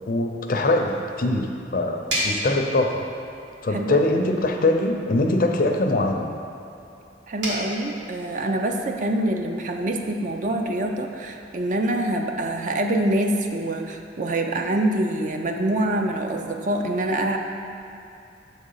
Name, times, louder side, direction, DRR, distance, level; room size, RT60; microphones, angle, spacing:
voice 1, 0.1-3.0 3.6-6.3, left 2 dB, 50° left, 3 dB, 0.5 m, -22 dB
sound 1, 0.5-11.7, equal, 65° right, 1.6 m, -37 dB
voice 2, 3.7-4.0 7.3-17.4, right 1 dB, 45° right, 3 dB, 0.4 m, -25 dB
6.9 x 3.8 x 5.5 m, 2.8 s
head